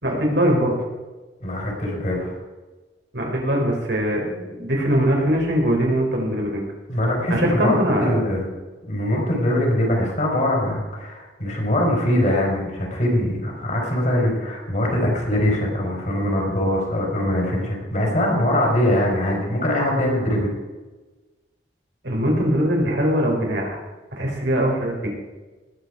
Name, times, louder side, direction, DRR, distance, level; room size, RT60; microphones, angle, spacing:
voice 1, 0.0-0.8 3.1-6.7 7.3-8.1 22.0-23.8 24.1-25.1, equal, 85° right, 0 dB, 4.0 m, -21 dB
voice 2, 1.4-2.3 6.9-8.5 8.9-20.5, left 1 dB, 45° left, 0 dB, 3.9 m, -22 dB
19.0 x 8.0 x 4.8 m, 1.2 s
head